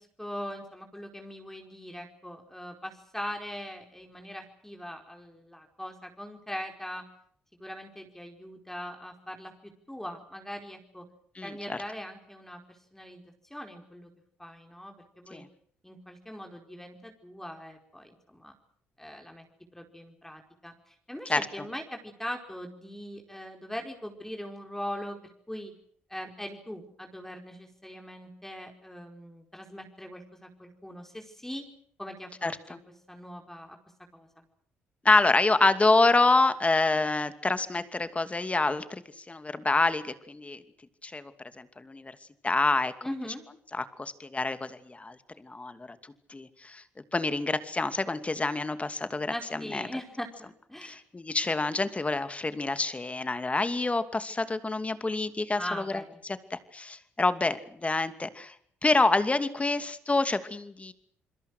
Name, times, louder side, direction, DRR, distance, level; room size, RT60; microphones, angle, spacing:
voice 1, 0.0-7.0 7.5-11.1 11.4-13.2 13.5-14.1 14.4-15.4 15.8-18.5 19.0-19.4 19.7-25.2 25.5-25.7 26.1-31.7 32.0-32.8 33.1-33.8 34.1-34.4 43.0-43.4 49.3-51.0 55.5-56.2, equal, 5° left, 3 dB, 4.9 m, -41 dB
voice 2, 11.4-11.8 15.3-15.5 21.3-21.4 32.4-32.8 35.0-40.6 41.0-41.3 41.6-42.1 42.4-42.9 43.7-46.0 46.3-46.8 47.1-49.9 50.8-58.5 58.8-60.9, left 3 dB, 25° left, 11 dB, 2.6 m, -27 dB
28.5 x 22.0 x 6.3 m, 0.64 s
hypercardioid pair, 55°, 5 cm